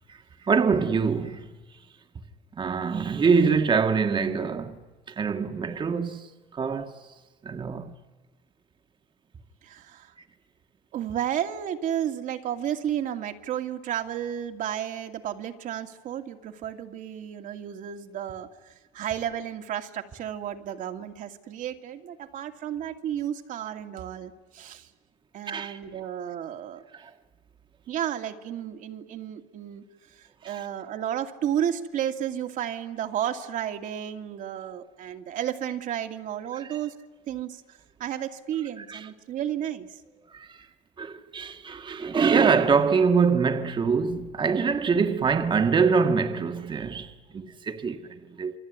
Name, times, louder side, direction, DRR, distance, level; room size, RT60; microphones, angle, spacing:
voice 1, 0.1-1.5 2.6-4.8 5.1-7.0 7.4-7.9 25.5-25.8 26.9-27.1 30.4-30.6 36.5-36.7 38.8-39.1 40.3-40.7 41.0-48.5, right 5 dB, 30° right, 1.7 m, -25 dB
voice 2, 9.6-10.1 10.9-24.9 25.3-26.8 27.9-29.8 30.1-37.0 37.3-40.0, right 10 dB, 60° right, 2.5 m, -32 dB
28.0 x 22.0 x 9.7 m
supercardioid pair, 90°, 15 cm